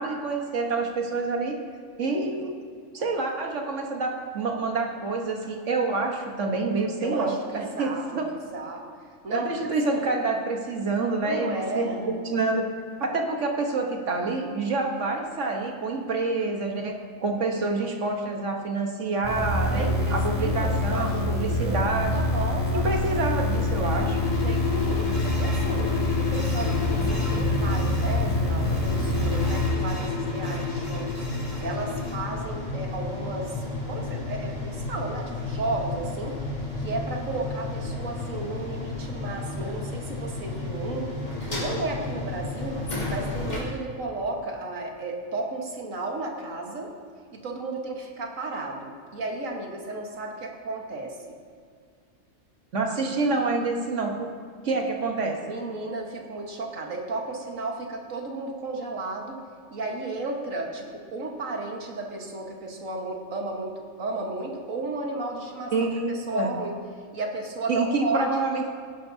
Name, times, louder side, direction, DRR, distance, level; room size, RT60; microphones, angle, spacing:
voice 1, 0.0-1.6 2.0-2.5 2.9-8.3 9.3-12.7 13.0-22.1 22.7-24.2 52.7-54.3 54.6-55.4 65.7-66.5 67.7-68.7, right 3 dB, 70° right, 2 dB, 1.6 m, -27 dB
voice 2, 7.0-8.9 9.2-9.6 9.9-10.1 11.2-12.1 19.7-23.6 24.2-36.4 36.8-41.1 41.5-42.8 43.1-46.9 47.3-51.3 55.5-59.4 59.7-65.7 66.1-66.7 67.1-68.3, right 2 dB, 90° right, 1 dB, 1.8 m, -33 dB
sound 1, 19.2-29.7, left 2 dB, 10° left, 2.9 m, -26 dB
sound 2, 23.0-32.1, left 6 dB, 75° left, 4.0 m, -33 dB
sound 3, 26.4-43.6, left 2 dB, 35° left, 2.6 m, -32 dB
17.5 x 10.5 x 2.7 m, 2.1 s
omnidirectional pair, 1.3 m